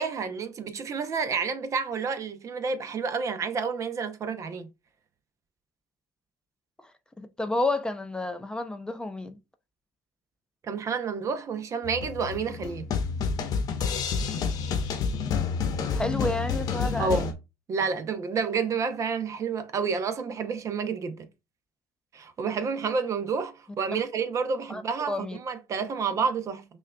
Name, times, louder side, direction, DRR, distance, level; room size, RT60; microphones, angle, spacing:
voice 1, 0.0-4.7 10.6-12.9 17.0-17.3 17.7-21.3 22.1-26.7, right 5 dB, 40° right, 0.7 m, -29 dB
voice 2, 7.2-9.4 15.9-17.2 23.9-24.0 24.7-25.4, left 2 dB, 10° left, 0.4 m, -30 dB
Drum Chamber Binaural, 11.8-17.3, left 6 dB, 50° left, 0.9 m, -29 dB
5.4 x 2.4 x 2.3 m
supercardioid pair, 85°, 8 cm